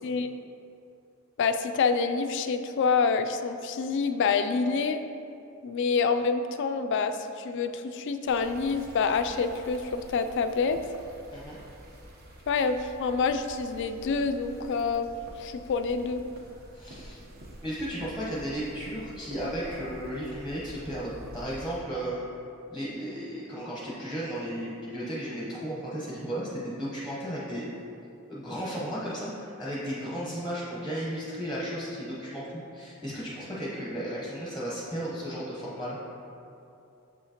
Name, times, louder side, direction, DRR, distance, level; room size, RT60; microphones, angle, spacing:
voice 1, 1.4-5.0 5.6-10.8 12.5-15.1 15.4-16.2, left 5 dB, 60° left, 9 dB, 0.3 m, -27 dB
sound 1, 8.3-21.8, equal, 45° right, 0.8 m, -48 dB
voice 2, 16.7-17.2 17.6-22.3 22.7-27.7 28.3-36.0, equal, ahead, -7 dB, 0.9 m, -34 dB
6.8 x 5.6 x 2.9 m, 2.7 s
head